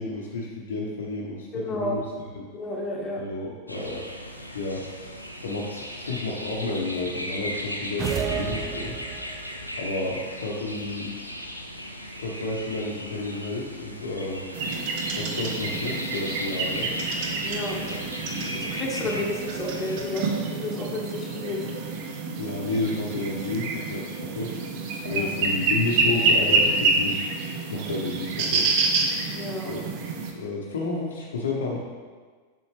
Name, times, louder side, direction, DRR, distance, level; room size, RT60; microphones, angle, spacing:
voice 1, 0.0-2.1 2.3-2.5 3.2-4.1 4.5-9.0 9.8-11.1 12.2-14.5 15.1-16.9 17.8-18.0 18.2-18.7 22.4-24.5 25.0-27.4 27.7-28.7 29.7-29.8 30.3-31.8, left 2 dB, 65° left, -2 dB, 0.9 m, -31 dB
voice 2, 1.5-2.0 2.5-3.2 17.4-17.8 18.6-21.6 25.0-25.3 29.3-29.8, left 1 dB, 20° left, -2 dB, 1.4 m, -31 dB
sound 1, 3.7-20.0, equal, 90° left, 0.6 m, -37 dB
sound 2, 8.0-9.5, right 6 dB, 30° right, 0.5 m, -30 dB
sound 3, 14.5-30.3, right 3 dB, 45° right, 0.9 m, -27 dB
7.1 x 6.1 x 3.2 m, 1.5 s
figure-of-eight pair, 90°, 0 cm